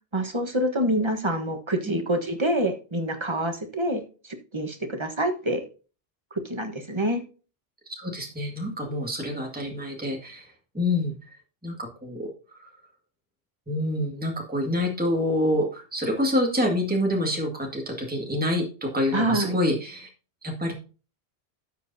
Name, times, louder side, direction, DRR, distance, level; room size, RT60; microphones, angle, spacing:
voice 1, 0.1-5.6 6.4-7.2 19.1-19.6, right 1 dB, 25° right, 5 dB, 1.3 m, -26 dB
voice 2, 7.9-11.4 11.6-12.7 13.7-20.1 20.4-20.7, left 1 dB, 10° right, 0 dB, 1.9 m, -27 dB
12.0 x 7.9 x 2.7 m, 0.36 s
omnidirectional pair, 1.1 m